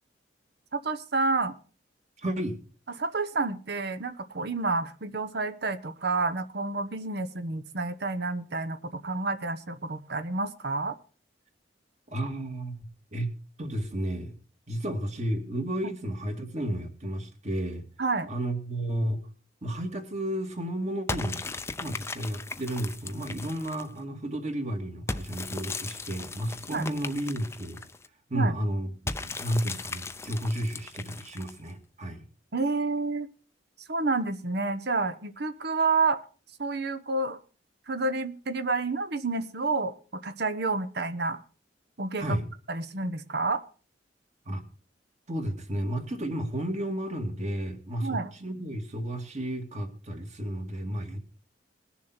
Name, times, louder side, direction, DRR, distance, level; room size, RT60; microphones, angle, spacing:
voice 1, 0.7-1.5 3.0-11.0 18.0-18.3 26.7-26.8 28.3-28.5 32.5-33.3 33.9-36.2 36.6-37.4 37.9-41.4 42.0-42.4 42.7-43.6 48.0-48.3, right 3 dB, 60° right, 11 dB, 1.0 m, -29 dB
voice 2, 2.2-2.6 12.1-13.3 13.6-14.3 14.7-17.8 18.3-19.2 19.6-21.4 21.8-27.8 28.3-32.2 42.2-42.5 44.5-44.6 45.3-51.2, right 1 dB, 40° right, 5 dB, 2.3 m, -32 dB
sound 1, 21.1-24.0 25.1-28.1 29.1-31.7, left 3 dB, 15° left, 0.6 m, -37 dB
20.5 x 7.0 x 4.4 m, 0.37 s
head